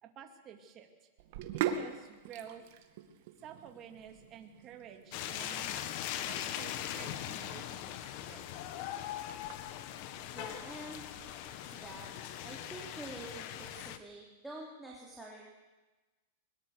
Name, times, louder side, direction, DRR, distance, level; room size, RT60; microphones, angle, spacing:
voice 1, 0.0-1.1 1.5-2.6 3.4-5.7 6.2-8.5, right 8 dB, 30° right, 4 dB, 2.7 m, -51 dB
Sink (filling or washing), 1.2-12.0, right 9 dB, 55° right, 2.2 m, -43 dB
sound 1, 5.1-14.0, left 11 dB, 45° left, 1.3 m, -41 dB
voice 2, 10.3-12.1 12.4-15.5, right 1 dB, 5° right, -4 dB, 3.2 m, -47 dB
22.0 x 21.5 x 6.7 m, 1.2 s
supercardioid pair, 150°, 0 cm